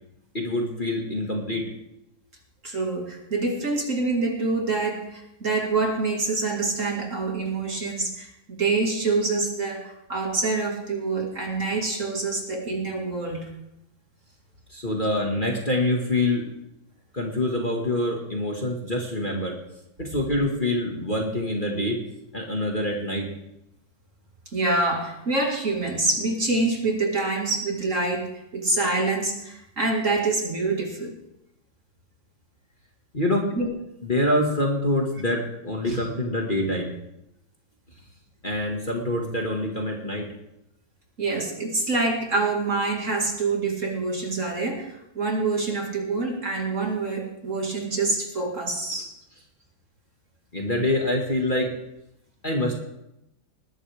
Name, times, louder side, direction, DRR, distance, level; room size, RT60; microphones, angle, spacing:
voice 1, 0.3-1.7 14.7-16.5 17.1-19.6 20.0-22.0 22.3-23.3 33.1-33.5 34.0-37.0 38.4-40.3 50.5-51.7 52.4-52.8, left 1 dB, 25° left, -1 dB, 2.0 m, -25 dB
voice 2, 2.6-13.5 24.5-31.1 33.5-33.7 35.8-36.0 41.2-49.1, right 3 dB, 40° right, 0 dB, 2.4 m, -26 dB
20.0 x 12.5 x 3.5 m, 0.85 s
omnidirectional pair, 2.2 m